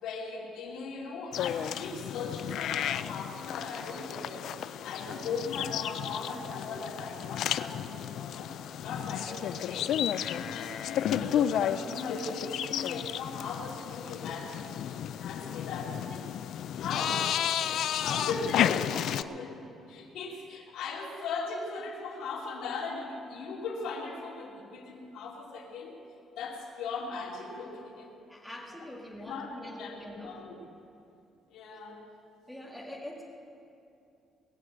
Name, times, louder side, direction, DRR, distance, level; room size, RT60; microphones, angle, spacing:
voice 1, 0.0-16.3 16.7-17.3 18.0-26.0 26.4-28.1 29.3-30.7 31.5-32.0, left 4 dB, 85° left, -2 dB, 2.6 m, -39 dB
sound 1, 1.3-19.2, left 10 dB, 60° left, 0.3 m, -32 dB
voice 2, 18.1-18.4 20.3-20.4 28.3-30.5 32.5-33.2, left 1 dB, ahead, -3 dB, 2.1 m, -44 dB
19.5 x 7.5 x 7.8 m, 2.7 s
cardioid pair, 170°, 0 cm